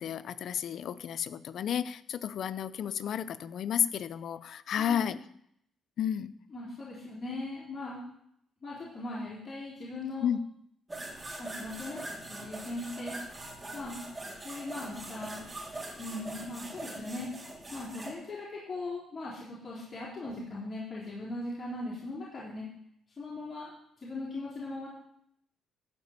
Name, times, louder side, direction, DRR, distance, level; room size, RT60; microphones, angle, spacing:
voice 1, 0.0-5.2 6.0-6.3 10.2-10.4, left 9 dB, 65° left, 15 dB, 0.5 m, -32 dB
voice 2, 4.8-5.1 6.5-8.1 8.6-10.3 11.4-12.0 12.3-13.2 13.7-14.0 14.4-15.4 16.0-17.3 17.7-22.7 23.2-23.7 24.0-24.9, left 2 dB, 35° left, -7 dB, 4.1 m, -39 dB
sound 1, 10.9-18.1, right 2 dB, 20° right, 3.3 m, -42 dB
14.0 x 5.0 x 8.2 m, 0.71 s
cardioid pair, 90°, 0 cm